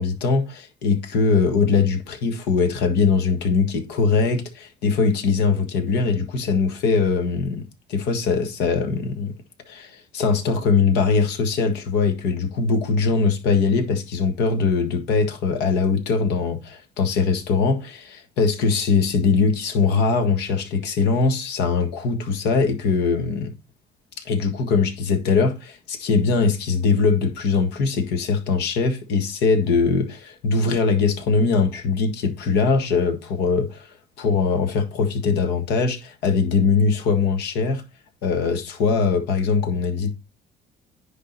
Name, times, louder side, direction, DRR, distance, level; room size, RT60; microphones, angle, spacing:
voice 1, 0.0-7.6 7.9-9.3 9.7-23.5 24.2-37.8 38.2-40.1, left 5 dB, 85° left, 1.6 m, -21 dB
10.0 x 3.8 x 4.0 m
cardioid pair, 110°, 17 cm